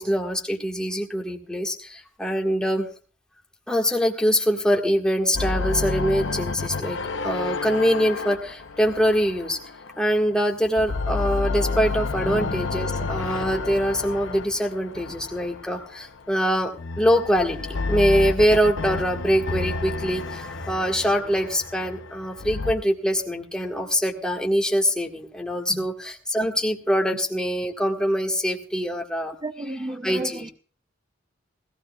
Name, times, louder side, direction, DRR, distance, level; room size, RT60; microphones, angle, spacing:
voice 1, 0.0-2.9 3.7-9.6 10.0-29.3 30.0-30.5, equal, 5° left, 0 dB, 1.6 m, -24 dB
sound 1, 5.3-10.3 10.7-16.0 16.7-22.7, left 3 dB, 70° left, 0.7 m, -30 dB
voice 2, 29.4-30.5, right 1 dB, 20° right, 10 dB, 0.5 m, -33 dB
20.0 x 15.0 x 2.3 m, 0.38 s
head